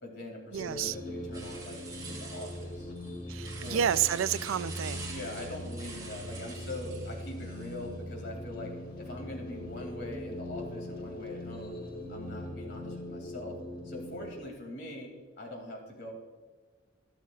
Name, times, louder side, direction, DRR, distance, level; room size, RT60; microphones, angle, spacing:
voice 1, 0.0-1.8 2.1-2.9 3.6-3.9 5.0-11.8 12.1-13.6 13.8-15.1 15.4-16.1, left 1 dB, 65° left, 2.6 m, -42 dB
sound 1, 0.5-14.3, left 1 dB, 50° left, 1.8 m, -41 dB
voice 2, 0.5-1.0 3.3-5.1, right 9 dB, 85° right, 0.4 m, -30 dB
sound 2, 1.3-7.9, right 4 dB, 20° right, 2.1 m, -46 dB
12.5 x 12.0 x 2.4 m
head